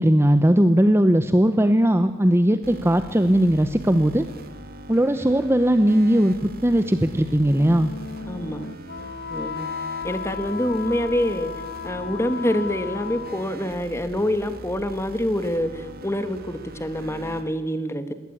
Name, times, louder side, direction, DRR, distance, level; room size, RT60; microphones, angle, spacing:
voice 1, 0.0-4.3 4.9-7.9, right 1 dB, 10° right, 10 dB, 0.8 m, -19 dB
sound 1, 2.6-17.4, right 1 dB, 45° right, 1.9 m, -41 dB
Wind instrument woodwind instrument, 7.5-13.7, left 6 dB, 50° left, 0.8 m, -35 dB
voice 2, 8.3-8.7 9.3-9.7 10.0-11.5 11.8-18.1, equal, 15° left, 10 dB, 1.4 m, -26 dB
21.0 x 17.5 x 8.6 m, 1.2 s
head